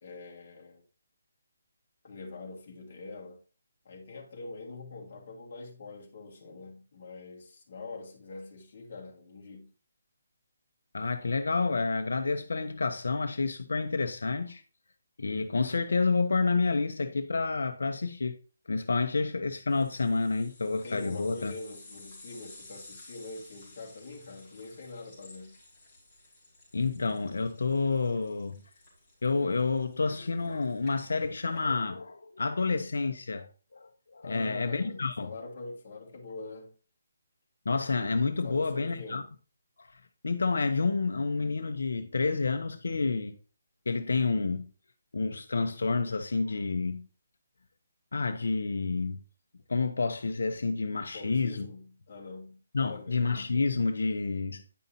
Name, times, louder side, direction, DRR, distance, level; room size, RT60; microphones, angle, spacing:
voice 1, 0.0-0.8 2.0-3.4 3.8-9.7 20.8-25.6 34.2-36.7 38.4-39.3 51.1-53.3, left 3 dB, 35° left, 1.9 m, -44 dB
voice 2, 10.9-14.6 15.2-18.4 18.7-21.5 26.7-28.6 29.2-35.3 37.6-39.2 39.8-43.3 43.9-44.7 45.1-47.1 48.1-49.2 49.7-51.7 52.7-54.6, left 4 dB, 85° left, 0.8 m, -29 dB
sound 1, 19.7-31.6, left 2 dB, 10° left, 2.9 m, -54 dB
9.4 x 5.3 x 2.8 m
hypercardioid pair, 175°, 0 cm